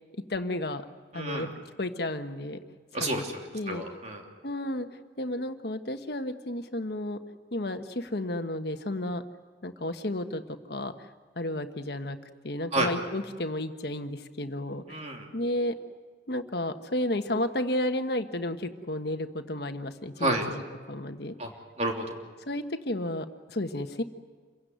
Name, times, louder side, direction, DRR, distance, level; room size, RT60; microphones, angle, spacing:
voice 1, 0.3-0.8 1.1-1.5 1.8-2.6 3.0-3.2 3.5-3.8 4.4-4.9 5.2-7.2 7.5-9.2 9.6-10.9 11.4-12.2 12.4-15.0 15.3-15.7 16.3-20.6 20.9-21.3 22.5-24.0, left 1 dB, 60° left, 7 dB, 1.4 m, -32 dB
voice 2, 1.1-1.5 2.9-4.2 12.7-12.9 14.9-15.3 20.2-20.4 21.4-21.5 21.8-22.2, right 1 dB, 35° right, 1 dB, 3.2 m, -30 dB
27.5 x 16.5 x 9.5 m, 1.5 s
head